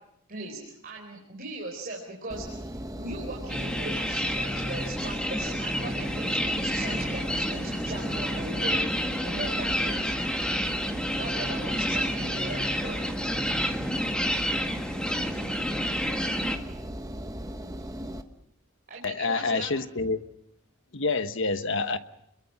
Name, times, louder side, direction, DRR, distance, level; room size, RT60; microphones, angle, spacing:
voice 1, 0.3-2.4 3.0-8.8 9.2-10.2 11.2-13.0 18.9-19.7, right 2 dB, 40° right, 4.7 m, -39 dB
Engine, 2.3-18.2, equal, 15° right, 1.3 m, -38 dB
sound 1, 3.5-16.6, equal, 5° left, 1.8 m, -29 dB
voice 2, 19.0-20.2 20.9-22.0, left 3 dB, 55° left, 1.2 m, -27 dB
29.5 x 22.0 x 5.9 m
head